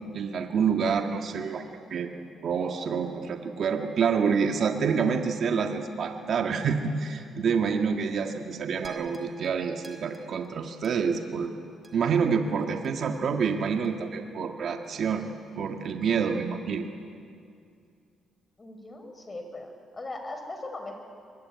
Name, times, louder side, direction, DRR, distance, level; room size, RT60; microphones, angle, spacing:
voice 1, 0.1-2.1 2.4-11.5 11.9-15.2 15.6-16.9, right 6 dB, 60° right, 4 dB, 1.8 m, -27 dB
voice 2, 2.6-3.2 18.6-20.9, left 2 dB, 25° left, 5 dB, 5.2 m, -40 dB
sound 1, 8.8-13.2 13.8-13.9, right 2 dB, 30° right, 3.0 m, -52 dB
23.5 x 22.5 x 9.6 m, 2.3 s
cardioid pair, 90°, 0 cm